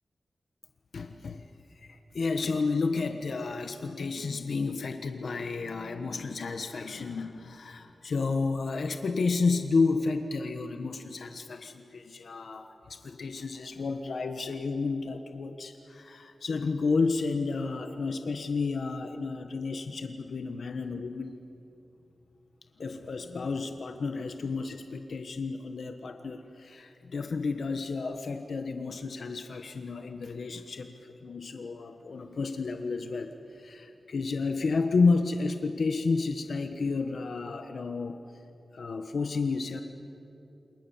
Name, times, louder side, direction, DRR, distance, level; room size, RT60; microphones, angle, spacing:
voice 1, 0.9-21.3 22.8-38.2 38.7-39.8, left 4 dB, 65° left, 6 dB, 1.3 m, -31 dB
29.0 x 27.0 x 7.3 m, 3.0 s
wide cardioid pair, 155°, 0 cm